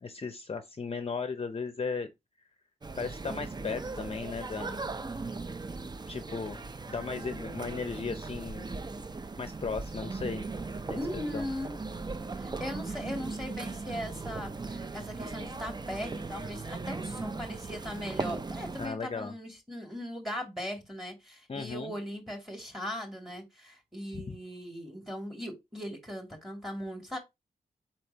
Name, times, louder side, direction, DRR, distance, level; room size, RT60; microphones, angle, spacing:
voice 1, 0.0-2.1 3.0-4.8 6.1-6.6 6.9-8.7 9.4-10.4 10.9-11.0 11.3-11.5 18.8-19.3 21.5-22.0 24.1-24.4, left 4 dB, 40° left, 0.6 m, -36 dB
sound 1, 2.8-18.9, right 3 dB, 25° right, 0.5 m, -38 dB
voice 2, 11.0-11.8 12.4-27.2, equal, ahead, 2.3 m, -39 dB
4.4 x 4.3 x 2.8 m
cardioid pair, 60°, 16 cm